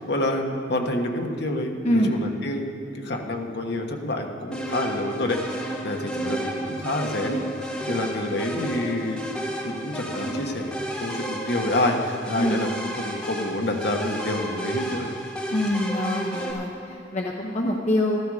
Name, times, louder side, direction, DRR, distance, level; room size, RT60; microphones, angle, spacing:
voice 1, 0.1-7.4 7.9-9.2 9.6-15.1, left 1 dB, 60° left, 2 dB, 1.3 m, -28 dB
sound 1, 4.5-16.5, right 1 dB, 5° left, 1.8 m, -32 dB
voice 2, 15.5-18.2, left 1 dB, 35° left, -1 dB, 0.8 m, -24 dB
14.0 x 13.5 x 4.9 m, 2.6 s
head